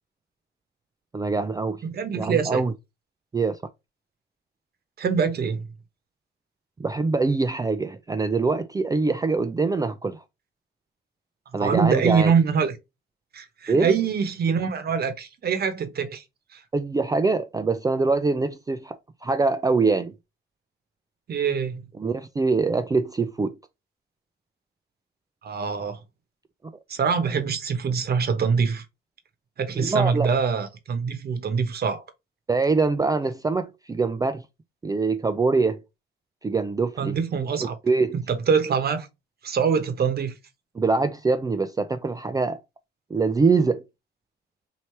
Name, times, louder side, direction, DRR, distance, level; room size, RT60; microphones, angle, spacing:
voice 1, 1.1-1.8 2.1-2.7 3.3-3.6 6.8-10.2 11.5-12.3 13.7-13.9 16.7-20.1 22.0-23.5 29.8-30.3 32.5-34.4 34.8-35.8 36.4-37.2 37.6-38.2 40.8-42.6 43.1-43.8, right 4 dB, 20° right, 0.4 m, -24 dB
voice 2, 1.8-2.6 5.0-5.6 11.6-12.7 13.3-16.2 16.5-16.6 21.3-21.8 25.4-26.0 26.9-28.8 29.6-32.0 37.0-37.8 38.1-39.1 39.4-40.3, right 6 dB, 55° right, 1.0 m, -24 dB
3.2 x 2.8 x 4.3 m
cardioid pair, 90°, 20 cm